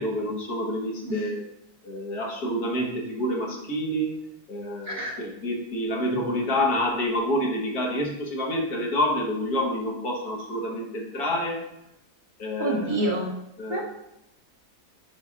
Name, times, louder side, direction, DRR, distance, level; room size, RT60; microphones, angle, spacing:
voice 1, 0.0-1.5 1.8-4.2 4.5-11.6 12.4-13.0 13.6-13.8, equal, 75° left, -1 dB, 1.8 m, -28 dB
voice 2, 12.6-13.3 13.7-13.8, right 1 dB, 60° right, -3 dB, 1.7 m, -27 dB
9.5 x 5.8 x 2.5 m, 0.87 s
omnidirectional pair, 1.6 m